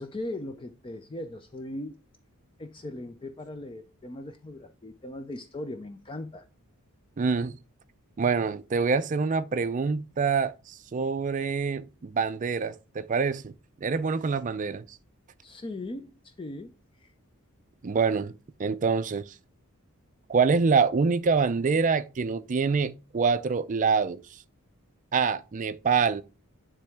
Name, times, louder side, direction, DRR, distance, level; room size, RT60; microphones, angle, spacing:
voice 1, 0.0-2.0 2.6-6.5 15.4-17.1, left 1 dB, 25° left, 0.4 m, -39 dB
voice 2, 7.2-7.5 8.2-13.5 13.8-15.0 17.8-18.3 18.6-19.2 20.3-24.2 25.1-26.2, right 5 dB, 35° right, 0.4 m, -25 dB
9.9 x 3.4 x 3.5 m
head